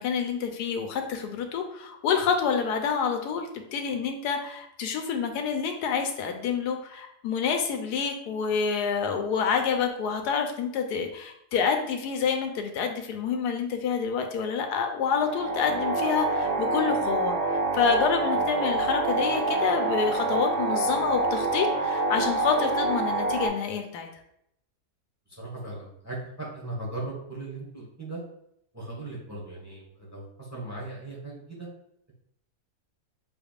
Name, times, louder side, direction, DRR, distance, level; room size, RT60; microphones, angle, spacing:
voice 1, 0.0-24.1, left 6 dB, 85° left, 5 dB, 1.2 m, -28 dB
sound 1, 15.1-23.5, right 2 dB, 80° right, 1.6 m, -27 dB
voice 2, 25.3-28.2 28.7-31.7, right 2 dB, 10° right, -4 dB, 1.1 m, -38 dB
5.8 x 3.4 x 2.4 m, 0.75 s
omnidirectional pair, 1.7 m